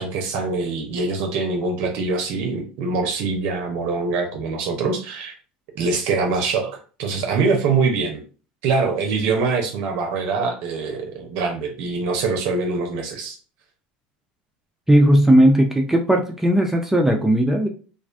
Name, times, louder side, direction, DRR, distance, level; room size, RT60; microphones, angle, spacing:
voice 1, 0.0-5.3 5.8-8.2 8.6-13.4, right 4 dB, 65° right, 3 dB, 0.5 m, -24 dB
voice 2, 14.9-17.7, right 1 dB, 5° right, 2 dB, 0.4 m, -16 dB
2.4 x 2.1 x 2.4 m, 0.37 s
hypercardioid pair, 90°, 5 cm